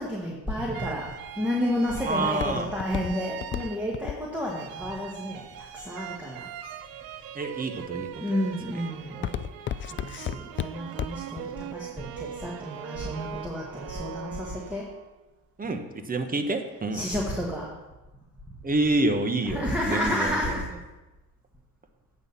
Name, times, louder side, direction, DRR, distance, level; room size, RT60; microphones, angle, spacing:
voice 1, 0.0-6.5 8.2-9.4 9.9-14.9 16.9-17.7 19.5-20.7, left 1 dB, 5° right, -3 dB, 1.7 m, -31 dB
sound 1, 0.7-4.1 4.5-15.1, right 10 dB, 75° right, 0.7 m, -41 dB
Walk footsteps, 1.1-6.2 6.8-7.3 7.8-8.2 8.5-11.4 11.7-11.8, left 10 dB, 35° left, 0.4 m, -34 dB
voice 2, 2.1-2.7 7.3-8.4 8.7-8.8 9.1-9.6 15.6-17.1 18.6-20.5, right 2 dB, 25° right, 7 dB, 1.1 m, -28 dB
8.8 x 4.3 x 6.9 m, 1.1 s
supercardioid pair, 75°, 36 cm